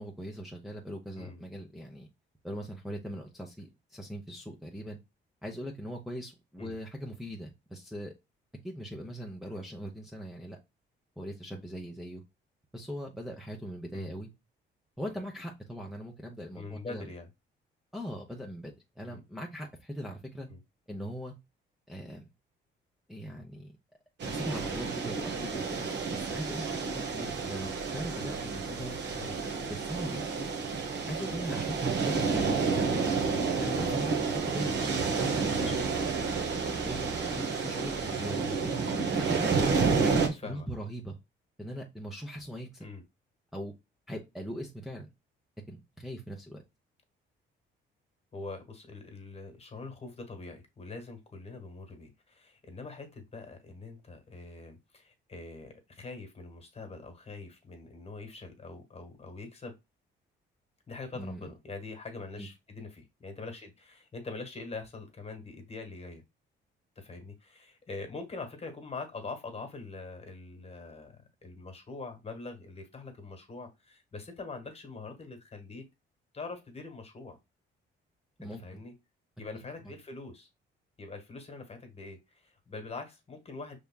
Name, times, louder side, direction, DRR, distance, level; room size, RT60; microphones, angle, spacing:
voice 1, 0.0-2.1 2.4-5.0 5.4-8.1 8.6-10.6 11.2-12.2 12.7-14.3 15.0-17.1 17.9-20.5 20.9-21.3 21.9-22.3 23.1-23.8 24.2-29.0 29.7-30.2 31.1-31.8 32.0-33.0 33.6-35.9 36.7-38.8 39.3-41.2 41.6-42.8 43.5-43.7 44.1-45.1 45.7-46.6 61.1-61.5 62.4-62.5 78.4-78.8 79.5-79.9, equal, ahead, -1 dB, 0.9 m, -40 dB
voice 2, 16.5-17.3 19.1-19.2 20.5-20.6 29.2-29.3 32.3-32.5 34.6-34.8 40.4-40.7 42.8-43.0 48.3-59.8 60.9-66.2 66.9-75.9 76.3-77.4 78.6-78.9 79.4-80.5 81.0-83.8, left 3 dB, 30° left, 5 dB, 1.5 m, -43 dB
sound 1, 24.2-40.3, right 4 dB, 60° right, 1.2 m, -30 dB
5.2 x 3.5 x 2.2 m, 0.23 s
cardioid pair, 95°, 21 cm